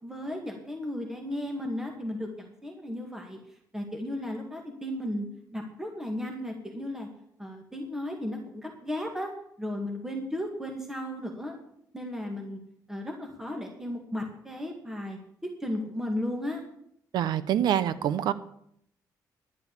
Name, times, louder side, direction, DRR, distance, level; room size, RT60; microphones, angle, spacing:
voice 1, 0.0-3.4 3.7-5.3 5.5-7.1 7.4-9.3 9.6-11.6 11.9-12.6 12.9-15.2 15.6-16.6, left 1 dB, 5° right, 1 dB, 2.1 m, -35 dB
voice 2, 17.1-18.3, right 10 dB, 85° right, 15 dB, 0.8 m, -25 dB
11.0 x 8.3 x 8.5 m, 0.71 s
cardioid pair, 120°, 7 cm